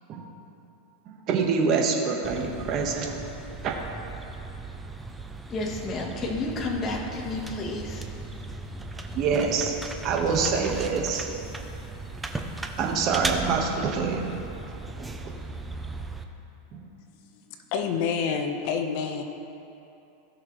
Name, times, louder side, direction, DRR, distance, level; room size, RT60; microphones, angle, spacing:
voice 1, 1.0-3.2 3.6-3.7 9.1-9.7 10.0-11.2 12.8-14.4 14.7-15.0 16.7-16.9, right 5 dB, 35° right, 1 dB, 1.4 m, -26 dB
sound 1, 2.2-16.2, right 2 dB, 10° right, 0.6 m, -37 dB
voice 2, 5.5-8.0 10.4-10.6, left 2 dB, 25° left, 0 dB, 1.3 m, -31 dB
voice 3, 17.5-19.2, left 6 dB, 55° left, 5 dB, 1.0 m, -28 dB
17.5 x 6.5 x 3.2 m, 2.8 s
supercardioid pair, 145°, 0 cm